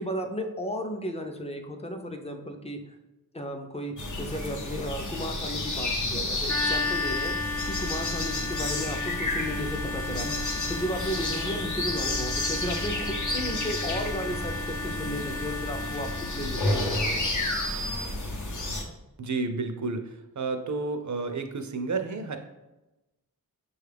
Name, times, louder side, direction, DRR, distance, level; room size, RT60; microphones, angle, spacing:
voice 1, 0.0-2.8 3.3-7.3 7.7-17.3, equal, 15° left, 5 dB, 0.5 m, -34 dB
sound 1, 4.0-18.8, left 2 dB, 50° left, 0.7 m, -31 dB
sound 2, 6.5-17.1, left 3 dB, 35° left, 1.0 m, -34 dB
voice 2, 19.2-22.4, right 3 dB, 50° right, 6 dB, 0.5 m, -31 dB
6.0 x 2.4 x 3.3 m, 1.0 s
wide cardioid pair, 60°, 37 cm